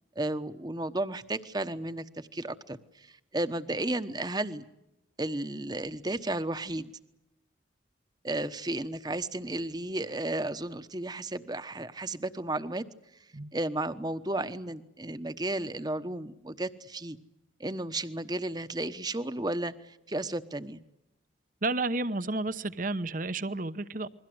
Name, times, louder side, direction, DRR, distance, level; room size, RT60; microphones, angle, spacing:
voice 1, 0.1-4.6 5.2-6.9 8.2-12.8 13.5-17.2 17.6-20.8, right 1 dB, 20° right, 11 dB, 1.1 m, -33 dB
voice 2, 21.6-24.1, right 2 dB, 45° right, 14 dB, 1.0 m, -31 dB
29.0 x 22.5 x 7.9 m, 0.89 s
head